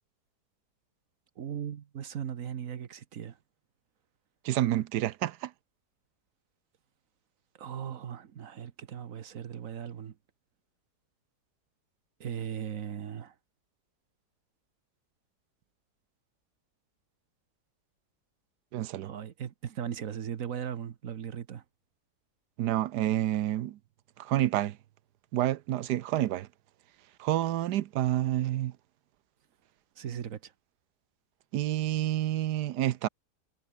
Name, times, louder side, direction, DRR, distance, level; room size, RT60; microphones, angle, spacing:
voice 1, 1.4-3.4 7.6-10.1 12.2-13.3 19.0-21.6 30.0-30.5, right 9 dB, 60° right, 1.3 m, -38 dB
voice 2, 4.4-5.5 18.7-19.1 22.6-23.8 24.2-24.8 25.3-26.5 27.2-28.7 31.5-33.1, right 13 dB, 90° right, 1.3 m, -28 dB
omnidirectional pair, 1.7 m